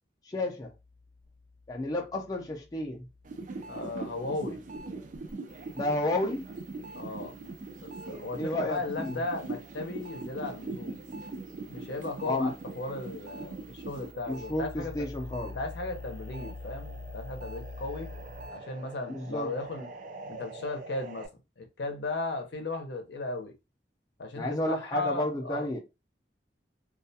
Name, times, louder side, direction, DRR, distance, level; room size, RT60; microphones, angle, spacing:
voice 1, 0.2-0.7 1.7-3.1 5.7-6.4 8.4-9.2 12.2-12.5 14.3-15.6 19.1-19.5 24.3-25.8, left 1 dB, 20° left, 0.4 m, -31 dB
sound 1, 0.6-18.5, left 2 dB, 90° right, 1.0 m, -48 dB
sound 2, 3.2-14.5 14.9-21.3, right 3 dB, 45° right, 0.3 m, -42 dB
voice 2, 3.7-4.6 6.9-7.3 7.8-11.0 11.7-14.9 15.5-18.1 18.5-19.9 20.3-21.3 21.6-23.5 24.2-25.7, left 2 dB, 70° left, 0.6 m, -36 dB
2.3 x 2.1 x 2.7 m
head